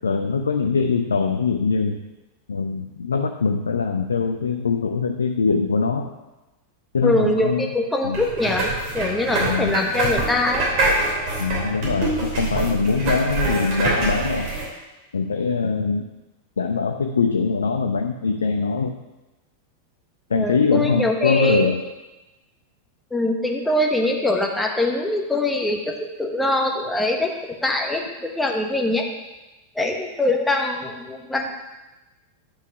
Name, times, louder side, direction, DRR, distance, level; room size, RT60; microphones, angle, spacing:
voice 1, 0.0-2.0 2.5-6.1 6.9-7.7 8.0-8.2 9.4-9.8 11.4-14.5 15.1-16.1 16.6-19.0 20.3-21.8, left 4 dB, 70° left, 5 dB, 0.5 m, -22 dB
voice 2, 7.0-10.6 20.3-21.7 23.1-27.3 27.6-29.0 29.7-31.5, left 2 dB, 5° left, 1 dB, 1.2 m, -23 dB
sound 1, 8.1-14.6, right 2 dB, 45° right, 3.1 m, -25 dB
10.0 x 5.6 x 4.7 m, 1.1 s
figure-of-eight pair, 90°, 0 cm